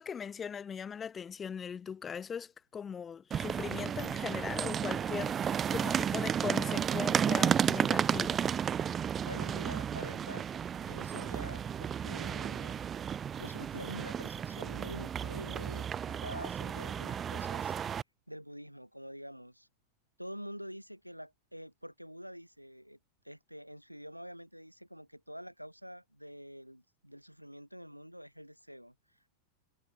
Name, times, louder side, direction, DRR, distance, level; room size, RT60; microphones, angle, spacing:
voice 1, 0.0-8.4, left 7 dB, 20° left, 0.8 m, -40 dB
sound 1, 3.3-18.0, right 8 dB, 25° right, 0.6 m, -33 dB
voice 2, 9.2-10.5 10.8-12.8 13.4-17.7 18.3-19.7 20.2-23.0 23.2-29.3, equal, 90° right, 1.1 m, -47 dB
figure-of-eight pair, 90°, 0 cm